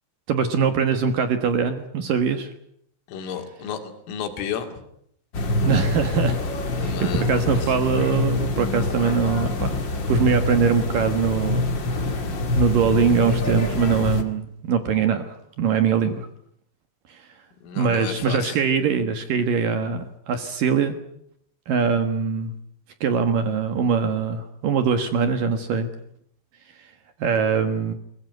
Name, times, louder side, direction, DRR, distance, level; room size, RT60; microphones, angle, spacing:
voice 1, 0.3-2.5 5.6-6.4 6.8-9.8 10.1-11.7 11.9-12.2 12.6-16.3 17.1-17.2 17.7-21.0 21.7-22.5 23.0-25.9 26.8-26.9 27.2-27.9, right 6 dB, 65° right, 9 dB, 2.3 m, -22 dB
voice 2, 3.1-4.8 6.8-7.7 17.6-18.6, left 7 dB, 85° left, 6 dB, 5.0 m, -32 dB
sound 1, 5.3-14.2, left 2 dB, 55° left, 1.2 m, -25 dB
21.5 x 21.0 x 9.4 m, 0.71 s
omnidirectional pair, 5.7 m